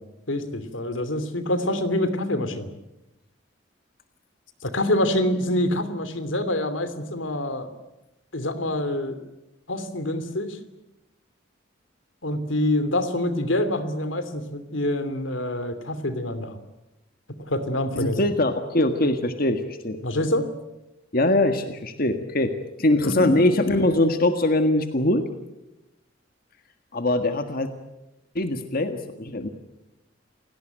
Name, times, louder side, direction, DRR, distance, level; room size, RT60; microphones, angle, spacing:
voice 1, 0.3-2.7 4.6-7.7 8.3-9.2 9.7-10.6 12.2-16.6 17.4-18.2 20.0-20.5 23.0-23.4, left 1 dB, 85° left, 12 dB, 2.8 m, -26 dB
voice 2, 17.9-20.0 21.1-25.2 26.9-27.7 28.3-29.5, left 1 dB, 50° left, 7 dB, 1.7 m, -22 dB
29.0 x 18.0 x 9.1 m, 0.94 s
head